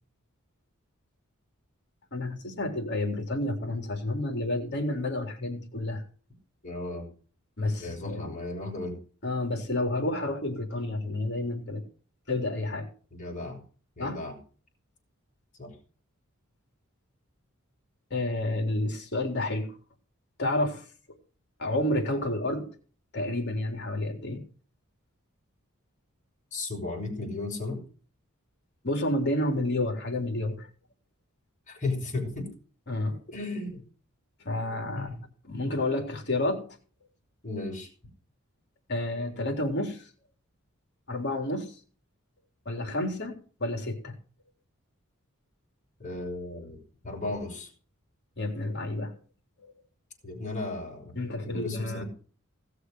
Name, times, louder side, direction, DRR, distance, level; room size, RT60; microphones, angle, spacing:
voice 1, 2.1-6.0 7.6-8.3 9.2-11.8 12.3-12.9 14.0-14.2 18.1-19.7 20.4-20.8 21.6-22.7 23.1-24.4 28.8-30.7 32.9-33.2 34.5-35.1 35.4-36.7 38.9-40.1 41.1-41.7 42.7-44.2 48.4-49.2 51.1-52.0, left 1 dB, 55° left, 3 dB, 3.7 m, -30 dB
voice 2, 6.6-7.1 7.8-9.0 13.1-13.6 14.0-14.4 15.6-15.7 26.5-27.8 31.7-32.5 33.3-33.8 34.9-35.2 35.6-35.7 37.4-37.9 46.0-46.8 47.0-47.7 50.2-51.1 51.4-52.0, left 2 dB, 35° left, 2 dB, 5.8 m, -35 dB
17.5 x 6.6 x 6.4 m, 0.40 s
head